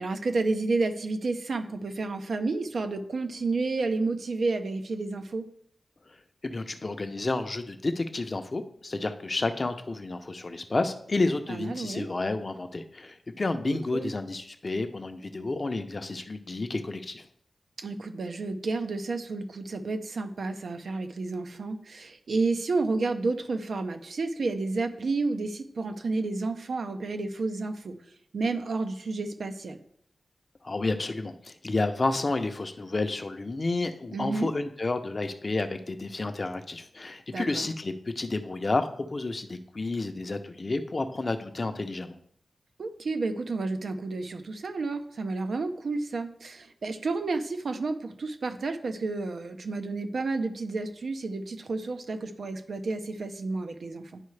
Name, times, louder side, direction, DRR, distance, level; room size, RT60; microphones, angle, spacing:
voice 1, 0.0-5.5 11.5-12.1 13.6-14.1 17.8-28.0 28.3-29.8 34.1-34.5 37.3-37.7 42.8-54.2, right 3 dB, 75° right, 7 dB, 0.6 m, -31 dB
voice 2, 6.4-17.2 30.6-42.2, left 2 dB, 35° left, 8 dB, 0.6 m, -30 dB
10.5 x 4.6 x 3.3 m, 0.67 s
wide cardioid pair, 130°, 0 cm